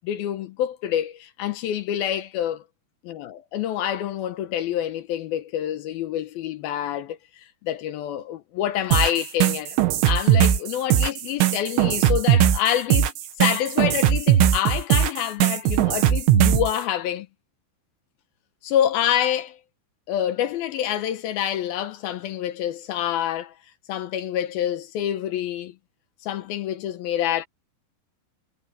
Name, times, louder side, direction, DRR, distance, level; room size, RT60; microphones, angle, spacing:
voice 1, 0.0-2.6 3.0-9.8 10.0-13.1 13.4-17.3 18.6-19.6 20.1-23.5 23.9-25.7 26.2-27.5, left 11 dB, 75° left, 2.3 m, -27 dB
sound 1, 8.9-16.8, right 10 dB, 80° right, 4.1 m, -19 dB
omnidirectional pair, 5.4 m